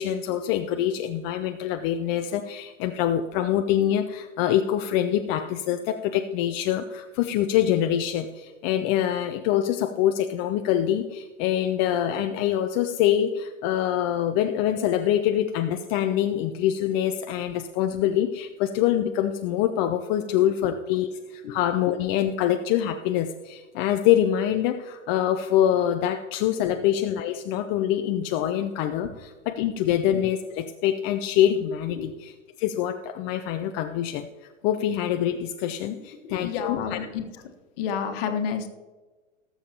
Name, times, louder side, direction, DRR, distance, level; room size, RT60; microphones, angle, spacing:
voice 1, 0.0-34.3 34.6-37.0, left 11 dB, 30° left, 6 dB, 0.5 m, -25 dB
voice 2, 36.2-37.3 37.8-38.7, left 7 dB, 50° left, 6 dB, 1.4 m, -29 dB
18.5 x 7.1 x 2.9 m, 1.3 s
hypercardioid pair, 105°, 38 cm